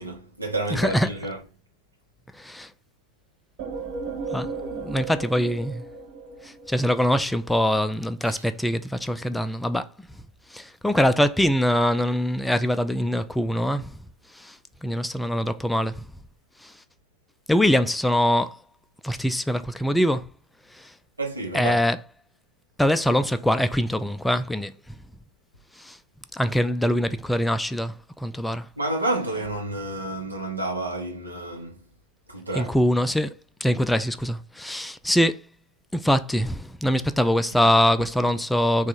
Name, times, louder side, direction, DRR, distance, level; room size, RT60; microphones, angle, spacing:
voice 1, 0.0-1.4 8.2-8.4 21.2-21.8 28.8-31.8 32.3-32.8, right 2 dB, 80° right, 0.9 m, -30 dB
voice 2, 0.7-1.1 2.4-2.7 4.3-5.9 6.4-9.9 10.5-13.9 14.3-14.6 14.8-16.1 16.6-16.7 17.5-18.6 19.0-20.2 20.7-20.9 21.5-22.0 22.8-24.7 25.8-26.0 26.3-28.7 32.6-33.3 33.6-35.5 35.9-38.9, equal, 5° left, 0.3 m, -23 dB
sound 1, 3.6-7.2, right 4 dB, 45° right, 0.8 m, -35 dB
3.5 x 2.4 x 4.4 m
figure-of-eight pair, 90°, 0 cm